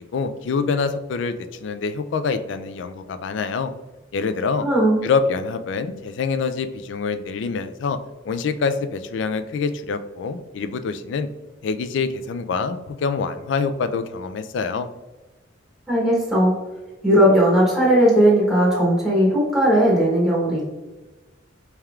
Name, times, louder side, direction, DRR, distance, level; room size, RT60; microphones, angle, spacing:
voice 1, 0.0-1.3 1.6-3.7 4.1-4.7 5.0-8.0 8.3-11.3 11.6-14.9, left 5 dB, 65° left, 10 dB, 0.3 m, -25 dB
voice 2, 4.6-5.0 15.9-16.5 17.0-20.6, equal, 5° right, -7 dB, 0.9 m, -17 dB
4.4 x 3.4 x 2.3 m, 1.1 s
head